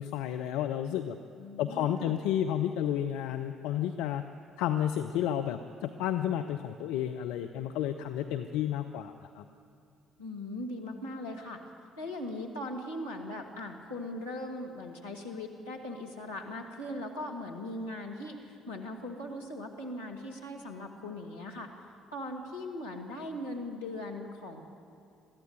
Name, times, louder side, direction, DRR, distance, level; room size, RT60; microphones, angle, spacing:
voice 1, 0.0-1.2 1.6-4.2 4.6-9.4, left 10 dB, 65° left, 7 dB, 0.6 m, -31 dB
voice 2, 1.4-2.2 10.2-11.6 12.0-21.7 22.1-24.6, left 1 dB, 85° left, -3 dB, 2.3 m, -39 dB
22.0 x 14.5 x 9.4 m, 2.5 s
figure-of-eight pair, 50°, 0 cm